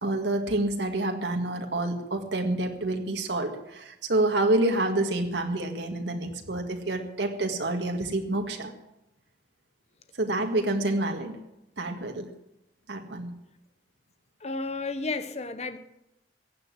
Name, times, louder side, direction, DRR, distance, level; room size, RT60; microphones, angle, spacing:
voice 1, 0.0-8.7 10.2-11.4 11.8-12.3 12.9-13.3, right 2 dB, 90° right, 1.9 m, -28 dB
voice 2, 14.4-15.8, left 3 dB, 40° left, 1.0 m, -32 dB
16.0 x 9.8 x 7.5 m
head